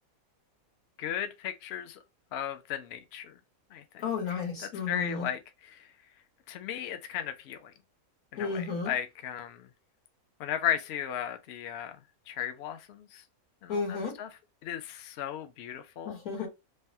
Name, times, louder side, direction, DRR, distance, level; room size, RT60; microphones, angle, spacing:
voice 1, 1.0-2.0 2.3-3.3 3.7-3.8 4.3-4.4 4.9-5.4 5.7-5.9 6.5-7.7 8.3-9.7 10.4-11.9 12.3-13.2 13.6-14.3 14.6-16.1, left 10 dB, 65° left, 0.7 m, -35 dB
voice 2, 4.0-5.3 8.4-8.9 13.7-14.2 16.0-16.5, left 5 dB, 90° left, 1.7 m, -33 dB
3.3 x 2.2 x 2.6 m
omnidirectional pair, 1.5 m